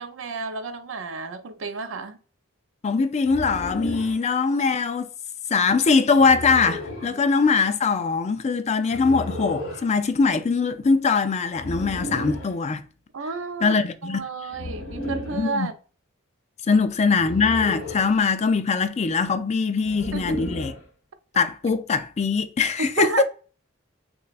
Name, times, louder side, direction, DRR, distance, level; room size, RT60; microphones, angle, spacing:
voice 1, 0.0-2.2 7.0-7.2 13.1-13.7 14.0-15.7 16.7-16.8 20.1-20.4 22.8-23.2, right 3 dB, 70° right, 0.5 m, -31 dB
voice 2, 2.8-5.1 5.5-12.8 13.6-14.3 15.3-15.7 16.7-20.7 21.4-23.2, left 4 dB, 35° left, 0.4 m, -22 dB
sound 1, 3.2-4.2 6.1-7.1 8.9-9.9 11.5-12.5 14.5-15.5 17.1-18.2 19.8-20.8, left 1 dB, 70° left, 1.3 m, -33 dB
6.0 x 2.3 x 2.4 m
head